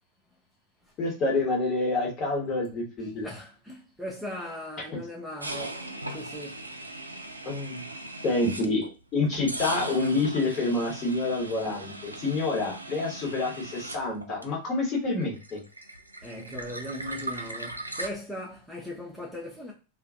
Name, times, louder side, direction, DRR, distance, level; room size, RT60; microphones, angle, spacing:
voice 1, 1.0-3.3 7.4-7.9 8.2-8.8 9.1-15.6, left 2 dB, 30° left, 1.1 m, -27 dB
voice 2, 3.2-6.7 16.2-19.7, left 1 dB, 5° right, 0.5 m, -39 dB
sound 1, 5.4-8.9 9.3-14.9 15.1-18.1, right 1 dB, 85° right, 0.3 m, -39 dB
2.4 x 2.2 x 2.4 m
figure-of-eight pair, 90°, 0 cm